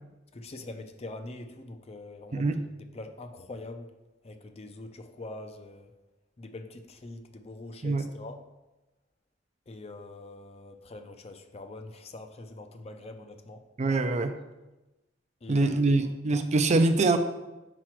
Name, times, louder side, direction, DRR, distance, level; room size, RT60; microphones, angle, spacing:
voice 1, 0.3-3.9 4.2-5.9 6.4-8.4 9.7-13.7 15.4-16.1, left 2 dB, 35° left, 7 dB, 0.5 m, -44 dB
voice 2, 2.3-2.6 7.8-8.1 13.8-14.4 15.5-17.2, right 3 dB, 35° right, 8 dB, 0.4 m, -24 dB
6.0 x 4.9 x 4.5 m, 1.0 s
head